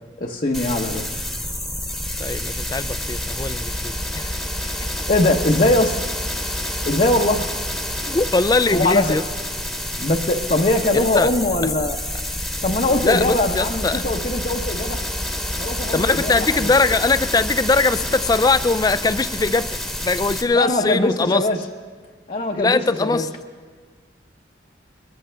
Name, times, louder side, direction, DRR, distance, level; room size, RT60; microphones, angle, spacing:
voice 1, 0.2-1.0 5.1-6.0 6.8-7.4 8.7-9.2 10.0-12.0 12.6-15.0 15.6-16.7 20.5-21.6 22.3-23.2, left 2 dB, 40° left, 0 dB, 0.8 m, -21 dB
sound 1, 0.5-20.4, left 1 dB, ahead, 1.1 m, -28 dB
voice 2, 2.2-4.4 8.0-9.2 10.9-11.3 13.0-14.0 15.9-21.5 22.6-23.3, left 3 dB, 20° left, 14 dB, 0.3 m, -21 dB
23.0 x 14.5 x 3.4 m, 1.5 s
head